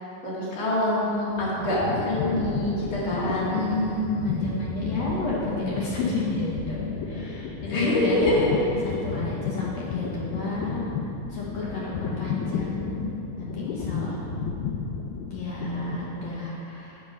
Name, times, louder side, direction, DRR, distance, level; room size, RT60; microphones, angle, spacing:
voice 1, 0.2-3.6 7.6-8.5, left 1 dB, 40° left, -8 dB, 2.4 m, -25 dB
sound 1, 1.0-16.5, left 5 dB, 85° left, 1.7 m, -32 dB
voice 2, 3.5-8.4 8.8-10.9 11.3-14.1 15.3-17.0, left 2 dB, 65° left, -5 dB, 1.8 m, -31 dB
8.5 x 5.3 x 5.3 m, 2.9 s
omnidirectional pair, 4.0 m